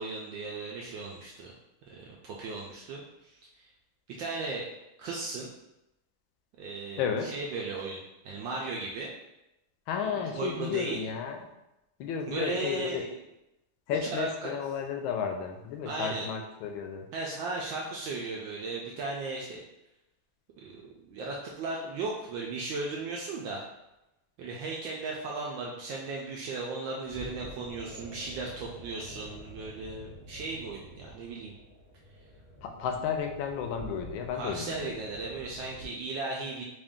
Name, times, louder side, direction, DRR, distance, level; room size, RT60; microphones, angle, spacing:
voice 1, 0.0-1.5 1.9-3.7 4.1-4.7 5.0-5.5 6.6-9.1 10.3-11.0 12.3-13.1 14.1-14.5 15.8-16.3 17.1-19.6 20.6-23.6 24.4-31.5 34.3-36.6, right 3 dB, 75° right, -2 dB, 1.1 m, -36 dB
voice 2, 7.0-7.3 9.9-11.4 12.0-13.1 13.9-17.1 32.6-35.0, left 7 dB, 75° left, 4 dB, 1.3 m, -33 dB
sound 1, 27.0-35.9, equal, 40° right, 0.6 m, -48 dB
3.8 x 2.5 x 3.5 m, 0.91 s
omnidirectional pair, 2.4 m